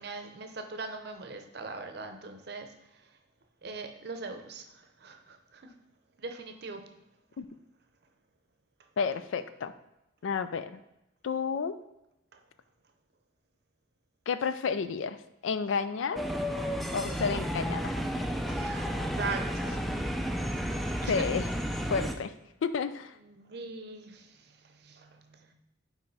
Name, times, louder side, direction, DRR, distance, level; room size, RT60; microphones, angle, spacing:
voice 1, 0.0-2.7 3.6-4.6 5.0-5.7 6.2-6.8 12.3-12.4 18.5-19.9 21.0-21.3 23.2-24.5 24.8-25.5, right 4 dB, 55° right, 6 dB, 0.6 m, -40 dB
voice 2, 9.0-9.7 10.2-10.8 11.2-11.8 14.3-15.2 15.4-16.2 16.9-18.0 21.1-21.5 21.9-22.3 22.6-23.1, left 5 dB, 85° left, 12 dB, 0.4 m, -31 dB
sound 1, 16.2-22.2, equal, ahead, 0.3 m, -32 dB
5.4 x 4.7 x 4.0 m, 0.88 s
head